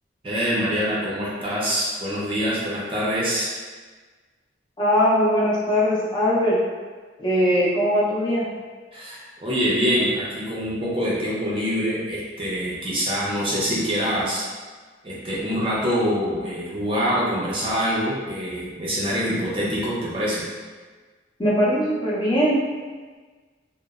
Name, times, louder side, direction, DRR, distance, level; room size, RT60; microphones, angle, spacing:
voice 1, 0.2-3.5 8.9-14.4 15.0-20.5, equal, 30° right, -6 dB, 0.5 m, -25 dB
voice 2, 4.8-6.6 7.2-8.5 21.4-22.6, equal, 25° left, -7 dB, 0.5 m, -20 dB
2.9 x 2.0 x 2.3 m, 1.4 s
head